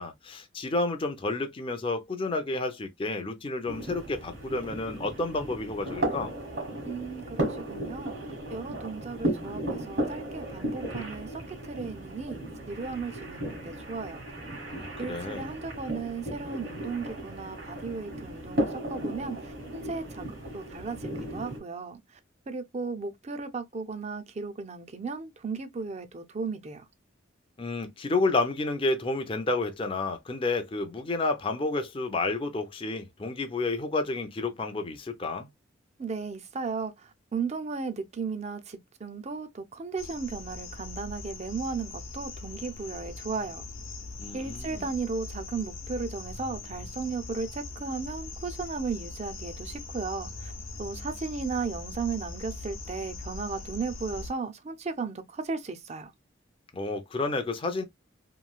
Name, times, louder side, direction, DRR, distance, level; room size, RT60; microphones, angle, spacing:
voice 1, 0.0-6.3 14.7-15.6 27.6-35.5 44.2-44.9 56.7-57.8, left 2 dB, 25° left, 0.5 m, -30 dB
sound 1, 3.7-21.6, right 1 dB, 65° right, 1.4 m, -35 dB
voice 2, 6.9-8.2 8.5-11.4 11.7-12.4 12.7-14.2 15.0-20.3 20.5-22.0 22.5-26.8 36.0-36.9 37.3-43.6 44.3-50.5 50.8-56.1, right 4 dB, 35° right, 0.4 m, -35 dB
sound 2, 40.0-54.3, left 3 dB, 85° left, 0.8 m, -41 dB
3.0 x 2.6 x 2.2 m
head